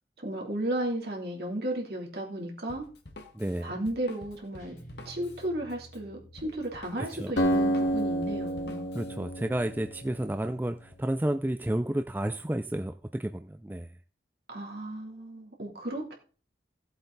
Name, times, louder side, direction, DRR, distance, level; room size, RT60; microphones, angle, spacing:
voice 1, 0.2-2.8 3.6-4.8 5.0-8.9 14.5-16.1, right 1 dB, 60° right, -1 dB, 3.1 m, -34 dB
Drum kit, 2.7-9.2, left 2 dB, 70° left, 1.6 m, -49 dB
voice 2, 3.3-3.7 7.0-7.3 8.9-13.9, right 1 dB, 10° right, 8 dB, 0.4 m, -31 dB
Guitar, 4.6-7.8, right 1 dB, 45° left, 5.7 m, -52 dB
Acoustic guitar, 7.4-10.9, right 1 dB, 90° left, 2.0 m, -30 dB
15.0 x 7.9 x 4.0 m, 0.40 s
head